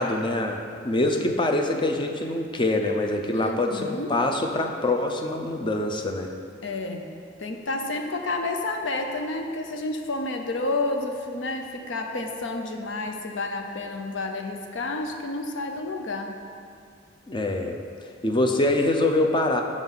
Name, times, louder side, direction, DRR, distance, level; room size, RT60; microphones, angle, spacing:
voice 1, 0.0-6.3 17.3-17.8 18.2-19.6, left 2 dB, 25° left, 3 dB, 0.5 m, -24 dB
voice 2, 3.3-4.1 6.6-7.1 7.4-16.3, left 2 dB, 70° left, 4 dB, 0.7 m, -30 dB
7.3 x 6.1 x 4.0 m, 2.3 s
head